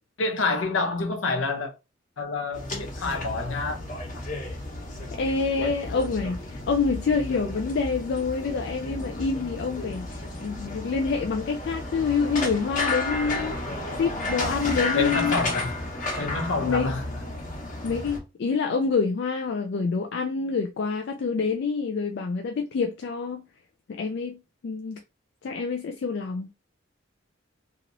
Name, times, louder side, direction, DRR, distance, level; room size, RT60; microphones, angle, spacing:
voice 1, 0.2-1.7 2.2-3.8 14.9-15.7 16.2-17.0, left 3 dB, 75° left, 0.8 m, -27 dB
sound 1, 2.5-18.2, left 2 dB, 40° left, 0.9 m, -32 dB
voice 2, 5.1-13.6 14.0-15.3 16.6-16.9 17.8-23.4 23.9-25.0 25.4-26.5, left 5 dB, 60° left, 0.3 m, -27 dB
2.9 x 2.8 x 2.6 m
head